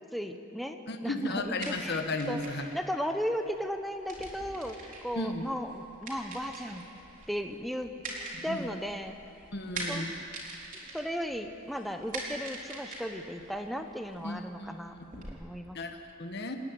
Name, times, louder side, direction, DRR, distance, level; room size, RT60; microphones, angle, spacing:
voice 1, 0.1-2.4 2.7-6.8 7.3-7.9 8.4-9.2 9.9-10.0 10.9-15.0 15.3-15.8, equal, ahead, 5 dB, 0.8 m, -36 dB
voice 2, 0.9-2.6 5.2-5.4 8.3-8.7 9.5-10.2 14.2-14.7 15.1-15.3 15.7-16.6, left 2 dB, 50° left, 5 dB, 1.3 m, -35 dB
sound 1, 1.3-15.3, right 2 dB, 40° right, 4.1 m, -44 dB
28.0 x 10.5 x 9.5 m, 2.8 s
head